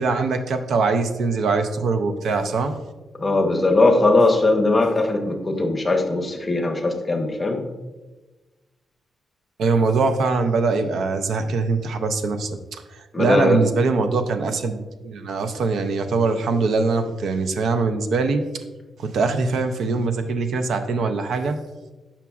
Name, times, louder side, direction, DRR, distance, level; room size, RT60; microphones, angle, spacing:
voice 1, 0.0-2.8 9.6-18.4 19.0-21.6, right 4 dB, 65° right, 8 dB, 0.4 m, -22 dB
voice 2, 3.2-7.6 13.1-13.6, left 2 dB, 20° left, 3 dB, 0.7 m, -19 dB
7.1 x 5.7 x 2.3 m, 1.2 s
wide cardioid pair, 170°, 0 cm